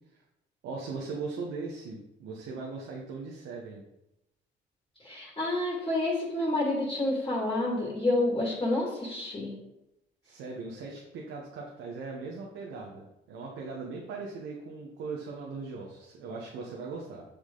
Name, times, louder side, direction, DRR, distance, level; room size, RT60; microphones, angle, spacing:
voice 1, 0.6-3.8 10.2-17.2, right 4 dB, 90° right, -1 dB, 1.2 m, -39 dB
voice 2, 5.0-9.5, left 2 dB, 20° left, -4 dB, 2.5 m, -29 dB
6.8 x 6.4 x 3.9 m, 0.90 s
cardioid pair, 90°, 20 cm